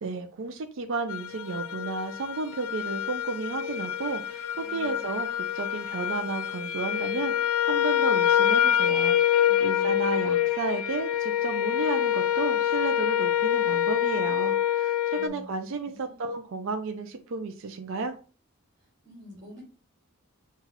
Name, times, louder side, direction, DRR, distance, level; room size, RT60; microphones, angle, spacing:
voice 1, 0.0-18.1, right 4 dB, 60° right, 6 dB, 0.4 m, -33 dB
sound 1, 1.1-15.3, left 11 dB, 75° left, 0.4 m, -26 dB
voice 2, 4.6-5.3 9.4-10.0 15.1-15.5 15.8-16.4 19.0-19.6, equal, 30° right, -9 dB, 2.0 m, -48 dB
5.6 x 2.3 x 2.8 m, 0.37 s
head